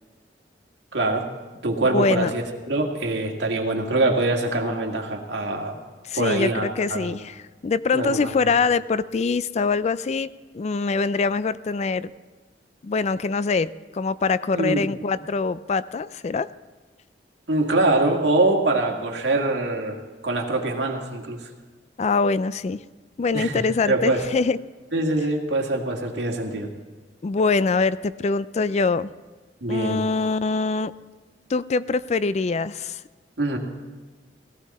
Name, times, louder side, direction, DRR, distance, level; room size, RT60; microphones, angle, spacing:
voice 1, 0.9-1.3 1.6-5.8 6.2-7.2 7.9-8.3 14.5-14.9 17.5-20.0 20.2-21.5 23.3-23.5 23.9-24.3 24.9-26.7 29.6-30.0 33.4-33.6, right 2 dB, 85° right, 1 dB, 2.0 m, -24 dB
voice 2, 1.9-2.3 6.0-10.3 10.5-12.1 12.8-16.5 22.0-22.8 23.2-24.6 27.2-29.1 29.7-30.9 31.5-33.0, left 4 dB, 40° left, 16 dB, 0.4 m, -24 dB
18.0 x 15.0 x 4.2 m, 1.3 s
head